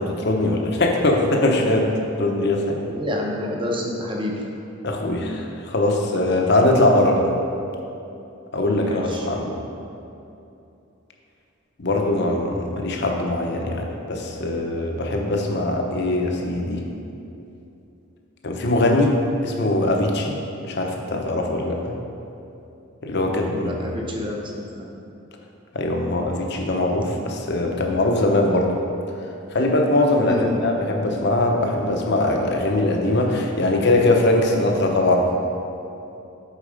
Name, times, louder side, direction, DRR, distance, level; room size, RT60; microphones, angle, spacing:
voice 1, 0.0-1.9 2.2-2.8 4.8-7.3 8.5-9.5 11.8-16.8 18.4-19.2 19.4-21.9 23.0-23.7 25.7-28.7 29.5-35.3, left 2 dB, 50° left, 1 dB, 0.9 m, -21 dB
voice 2, 2.9-4.4 8.8-9.3 23.5-24.9 30.2-30.6, left 1 dB, 25° right, -1 dB, 0.9 m, -28 dB
8.2 x 4.9 x 5.2 m, 2.8 s
head